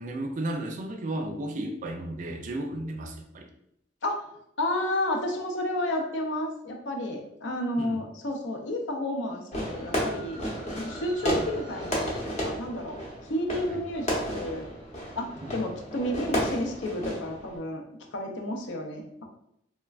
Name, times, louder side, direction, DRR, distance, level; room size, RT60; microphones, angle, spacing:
voice 1, 0.0-3.5 7.8-8.0 13.7-13.8 15.4-15.7, right 1 dB, 45° right, 5 dB, 0.3 m, -34 dB
voice 2, 4.6-10.4 10.8-13.0 13.3-14.7 15.2-17.8 18.1-19.2, left 1 dB, 75° left, 3 dB, 0.5 m, -31 dB
Fireworks, 9.5-17.6, equal, 40° left, 0.7 m, -32 dB
3.1 x 2.1 x 2.3 m, 0.76 s
head